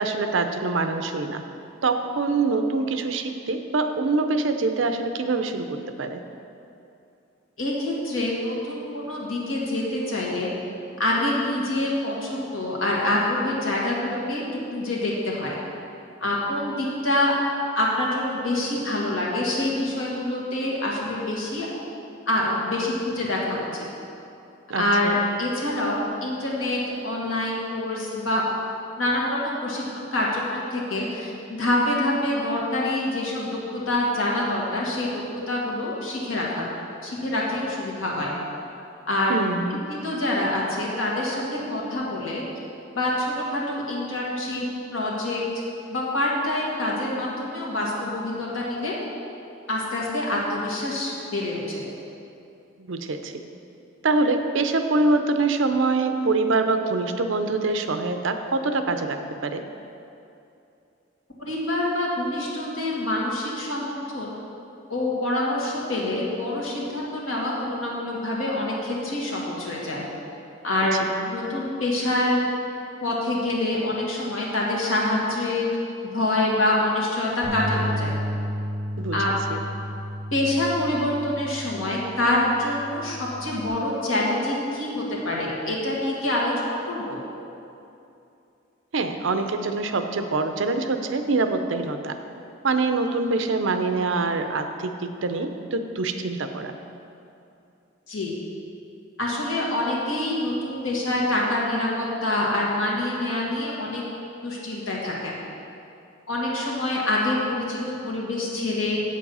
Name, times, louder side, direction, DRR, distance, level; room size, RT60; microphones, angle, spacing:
voice 1, 0.0-1.4 1.8-5.7 6.0-6.2 24.7-25.2 39.3-39.8 52.8-53.4 54.0-59.6 70.8-70.9 79.0-79.2 79.5-79.6 88.9-92.2 92.6-96.8, right 3 dB, 70° right, 7 dB, 0.6 m, -24 dB
voice 2, 7.6-10.5 11.0-14.4 14.7-15.5 16.2-17.3 17.7-21.7 22.3-23.8 24.8-28.4 29.0-36.7 37.0-38.3 39.1-39.4 39.9-42.4 43.0-44.7 44.9-45.4 45.9-49.0 49.7-51.9 61.4-64.3 64.9-70.0 70.6-72.4 73.0-75.7 76.1-78.1 79.1-79.3 80.3-87.2 98.1-98.3 99.2-104.0 104.4-105.3 106.3-109.0, left 1 dB, 90° left, -4 dB, 2.0 m, -26 dB
Bass guitar, 77.4-83.7, equal, 20° right, 2.4 m, -32 dB
7.8 x 7.4 x 5.5 m, 2.7 s
head